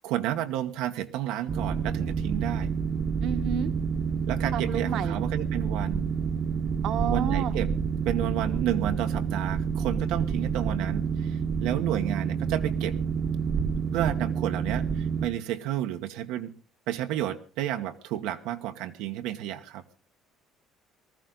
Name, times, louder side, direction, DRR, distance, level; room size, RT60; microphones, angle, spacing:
voice 1, 0.0-2.7 4.3-6.1 7.1-7.7 8.0-13.0 13.9-16.5 16.9-19.8, right 12 dB, 80° right, 6 dB, 1.2 m, -31 dB
Boat Water vehicle, 1.5-15.3, right 6 dB, 30° right, 1.0 m, -28 dB
voice 2, 3.2-3.7 4.5-5.2 6.8-7.5, right 8 dB, 50° right, 9 dB, 1.2 m, -30 dB
19.5 x 14.0 x 3.9 m, 0.35 s
cardioid pair, 170°, 0 cm